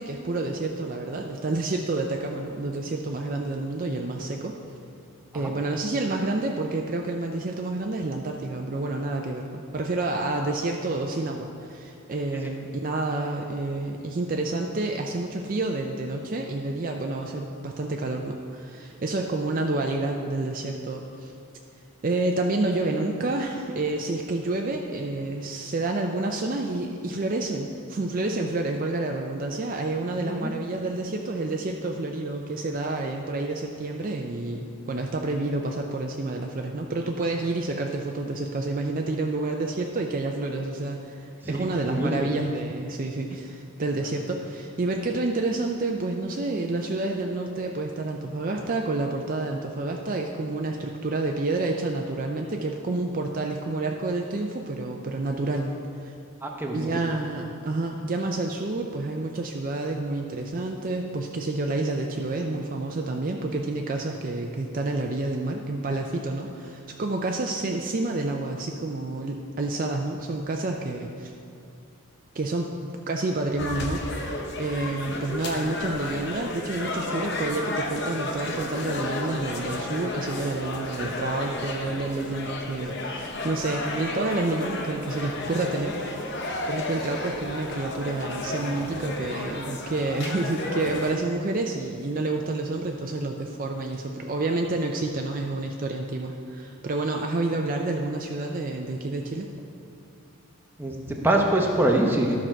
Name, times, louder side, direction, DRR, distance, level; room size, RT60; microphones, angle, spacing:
voice 1, 0.0-4.5 5.3-21.3 22.0-55.8 56.0-56.1 56.7-71.3 72.3-99.5, right 2 dB, 40° right, 2 dB, 0.4 m, -29 dB
voice 2, 30.2-30.5 41.4-42.3 56.4-56.9 100.8-102.3, right 1 dB, 10° right, 0 dB, 0.8 m, -25 dB
sound 1, 73.6-91.1, left 2 dB, 50° left, 0.8 m, -32 dB
12.5 x 6.1 x 4.5 m, 2.5 s
head